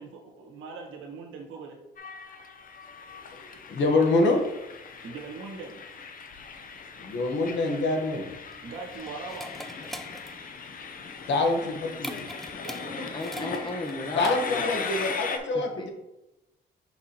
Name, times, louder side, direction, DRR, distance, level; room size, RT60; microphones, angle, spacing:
voice 1, 0.0-1.8 5.0-5.8 8.6-9.6 12.6-13.1, right 4 dB, 90° right, 1 dB, 1.4 m, -40 dB
Train, 2.0-15.4, left 5 dB, 45° left, 0.7 m, -39 dB
voice 2, 3.7-4.4 7.0-8.3 11.3-12.3 14.1-15.9, left 2 dB, 65° left, 3 dB, 1.3 m, -25 dB
sound 1, 8.3-14.8, equal, ahead, 0.4 m, -43 dB
voice 3, 12.9-14.9 15.5-15.9, left 1 dB, 25° left, 3 dB, 1.2 m, -35 dB
6.0 x 5.9 x 3.0 m, 0.94 s
cardioid pair, 90°, 20 cm